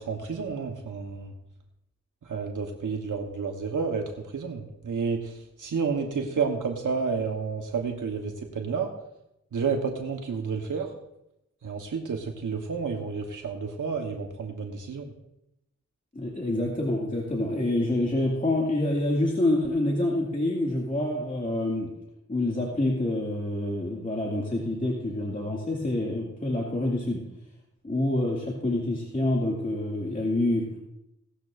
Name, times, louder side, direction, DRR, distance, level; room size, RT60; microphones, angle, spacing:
voice 1, 0.0-1.3 2.2-8.9 9.5-10.9 11.6-15.1, right 5 dB, 85° right, 3 dB, 1.2 m, -30 dB
voice 2, 16.1-21.9 22.3-27.2 27.8-30.7, left 1 dB, 25° left, -3 dB, 2.3 m, -27 dB
18.0 x 13.0 x 2.6 m, 0.85 s
wide cardioid pair, 65°, 31 cm